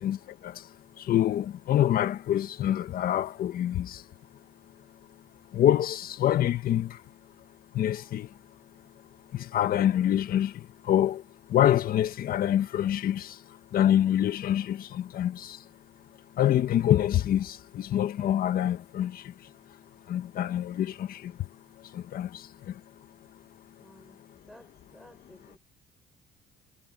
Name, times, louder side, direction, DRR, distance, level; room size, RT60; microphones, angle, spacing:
voice 1, 0.0-0.7 1.0-4.0 5.5-7.0 7.7-8.3 9.3-11.2 11.5-13.4 13.7-15.6 16.3-19.5 20.1-21.5 21.8-22.8, left 11 dB, 60° left, 1.7 m, -26 dB
voice 2, 23.8-25.6, equal, ahead, 6.3 m, -55 dB
cardioid pair, 110°, 17 cm